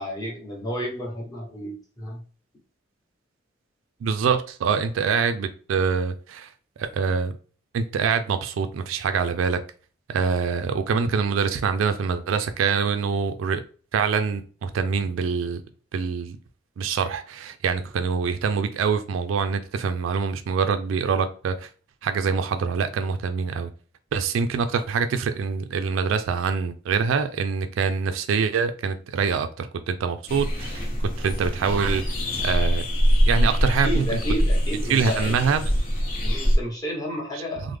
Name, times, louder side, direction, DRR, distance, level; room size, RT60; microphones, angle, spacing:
voice 1, 0.0-2.2 33.8-35.4 36.2-37.8, equal, 20° left, 0.9 m, -31 dB
voice 2, 4.0-6.5 6.9-7.3 7.7-9.6 10.1-13.6 13.9-15.6 15.9-16.4 16.8-21.7 22.0-23.7 24.1-30.9 31.2-32.0 32.4-32.9 33.3-34.2 34.9-35.7 37.3-37.7, right 5 dB, 80° right, 0.3 m, -25 dB
sound 1, 30.3-36.6, equal, 45° left, 0.9 m, -23 dB
3.3 x 2.0 x 3.2 m
head